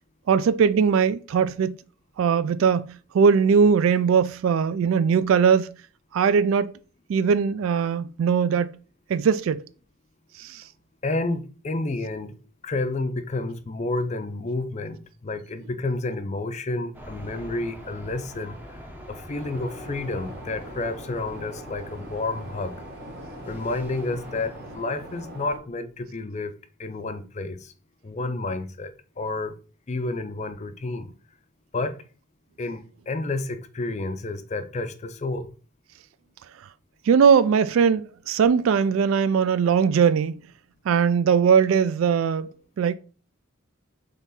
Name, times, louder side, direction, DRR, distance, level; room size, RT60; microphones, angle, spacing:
voice 1, 0.3-1.7 2.2-5.7 6.1-6.7 7.1-8.7 9.1-9.6 10.4-10.6 37.1-40.4 40.9-42.9, right 6 dB, 75° right, 0.3 m, -20 dB
voice 2, 11.0-12.3 12.6-18.6 19.1-22.7 23.5-26.5 26.8-27.7 28.0-29.5 29.9-31.1 31.7-32.0 32.6-35.5, left 2 dB, 35° left, 0.4 m, -30 dB
sound 1, 16.9-24.8, equal, 10° right, 0.7 m, -43 dB
sound 2, 19.3-25.6, right 1 dB, 50° right, 1.2 m, -42 dB
3.7 x 3.5 x 4.1 m
head